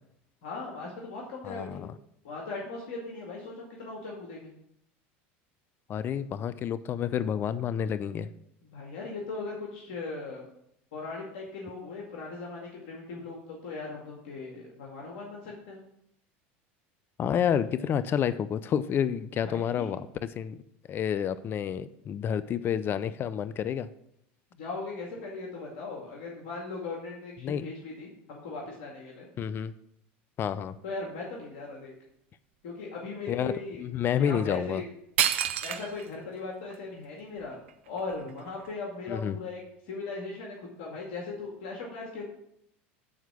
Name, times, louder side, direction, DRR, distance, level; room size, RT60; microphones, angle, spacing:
voice 1, 0.4-1.9 2.2-4.5 8.7-10.4 10.9-15.8 19.4-19.9 24.6-29.3 30.8-31.9 32.6-33.8 34.2-34.8 35.6-37.6 37.9-42.2, left 3 dB, 75° left, -2 dB, 2.1 m, -38 dB
voice 2, 1.4-1.9 5.9-8.3 17.2-20.6 20.9-23.9 27.4-27.7 29.4-29.7 30.4-30.8 33.3-33.5 33.8-34.8 39.1-39.4, left 8 dB, 35° left, 15 dB, 0.5 m, -29 dB
sound 1, 34.8-34.9 35.2-36.1 36.7-36.8 37.4-38.7, right 11 dB, 85° right, 0.6 m, -29 dB
8.6 x 4.6 x 6.2 m, 0.73 s
supercardioid pair, 105°, 6 cm